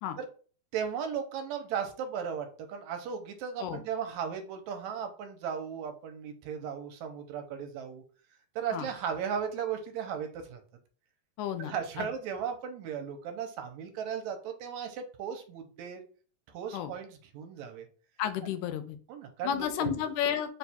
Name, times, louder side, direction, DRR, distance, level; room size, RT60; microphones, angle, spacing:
voice 1, 0.7-8.0 8.6-10.6 11.6-16.0 16.5-17.9 19.1-19.9, right 7 dB, 80° right, 6 dB, 2.0 m, -36 dB
voice 2, 11.4-12.1 16.7-16.9 18.2-19.0 19.4-20.6, left 9 dB, 90° left, 9 dB, 2.0 m, -32 dB
4.7 x 2.3 x 4.1 m, 0.40 s
omnidirectional pair, 3.3 m